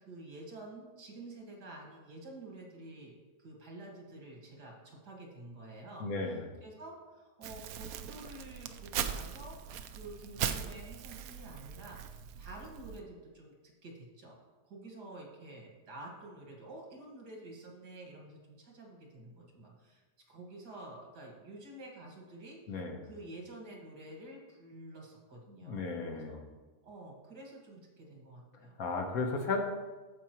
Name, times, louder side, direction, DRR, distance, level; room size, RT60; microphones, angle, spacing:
voice 1, 0.0-3.1 3.4-14.4 14.6-22.8 23.0-26.4 26.8-28.8, right 2 dB, 85° right, -1 dB, 2.4 m, -49 dB
voice 2, 6.0-6.4 22.7-23.0 25.6-26.4 28.8-29.6, left 3 dB, 60° left, 3 dB, 1.4 m, -34 dB
Crumpling crinkling, 7.4-13.0, right 8 dB, 70° right, 0.9 m, -40 dB
14.5 x 5.3 x 3.0 m, 1.3 s
omnidirectional pair, 1.7 m